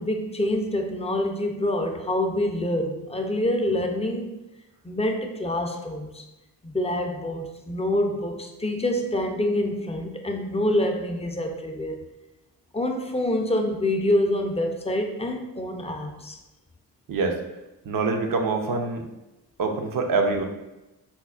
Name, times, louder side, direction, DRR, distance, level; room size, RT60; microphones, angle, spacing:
voice 1, 0.0-4.4 4.8-6.2 6.6-12.0 12.7-16.4, left 1 dB, 15° left, 3 dB, 0.4 m, -26 dB
voice 2, 17.1-17.4 17.9-19.0 19.6-20.4, right 3 dB, 50° right, 3 dB, 0.6 m, -25 dB
4.2 x 2.0 x 2.3 m, 0.98 s
supercardioid pair, 45°, 43 cm